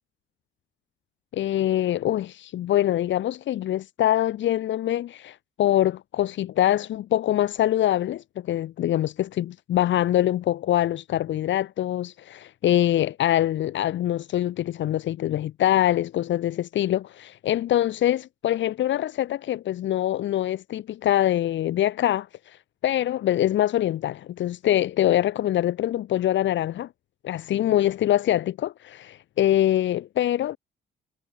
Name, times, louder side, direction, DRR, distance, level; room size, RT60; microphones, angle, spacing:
voice 1, 1.3-22.6 22.8-26.9 27.2-30.6, left 12 dB, 70° left, 1.0 m, -24 dB
cardioid pair, 90°, 20 cm